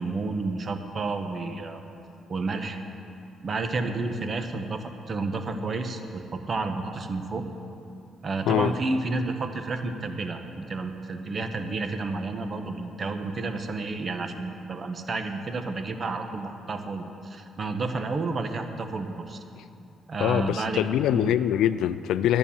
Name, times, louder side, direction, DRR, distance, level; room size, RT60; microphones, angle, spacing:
voice 1, 0.0-1.8 2.3-2.8 3.4-7.4 8.2-19.4 20.1-20.8 21.1-21.3, right 3 dB, 40° right, 7 dB, 1.0 m, -31 dB
voice 2, 20.2-22.4, left 11 dB, 85° left, 13 dB, 0.3 m, -23 dB
11.0 x 8.9 x 7.1 m, 2.7 s
cardioid pair, 90°, 0 cm